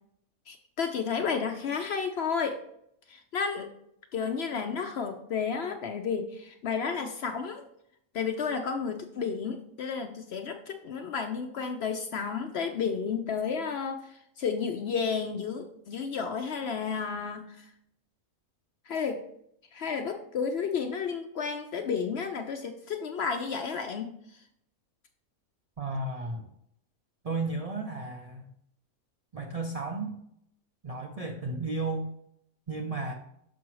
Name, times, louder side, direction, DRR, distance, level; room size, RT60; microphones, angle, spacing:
voice 1, 0.5-2.6 3.1-3.7 4.1-7.6 8.1-17.7 18.9-19.2 19.7-24.4, left 6 dB, 65° left, 5 dB, 0.7 m, -32 dB
voice 2, 25.8-26.5 27.2-28.5 29.3-30.2 30.8-32.1 32.7-33.1, right 3 dB, 65° right, 3 dB, 0.3 m, -33 dB
6.0 x 5.9 x 3.1 m, 0.73 s
omnidirectional pair, 1.5 m